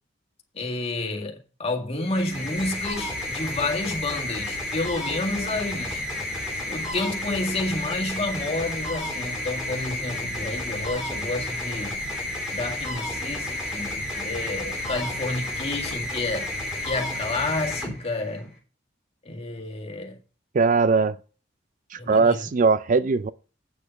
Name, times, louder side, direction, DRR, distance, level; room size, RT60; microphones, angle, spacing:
voice 1, 0.5-6.0 6.7-12.0 12.5-16.5 16.9-18.5 19.3-20.2 22.0-22.5, left 2 dB, 35° left, 1.9 m, -30 dB
sound 1, 2.0-18.5, left 1 dB, 5° right, 3.4 m, -31 dB
voice 2, 20.5-21.2 21.9-23.3, right 4 dB, 45° right, 0.4 m, -20 dB
8.6 x 6.7 x 5.3 m
head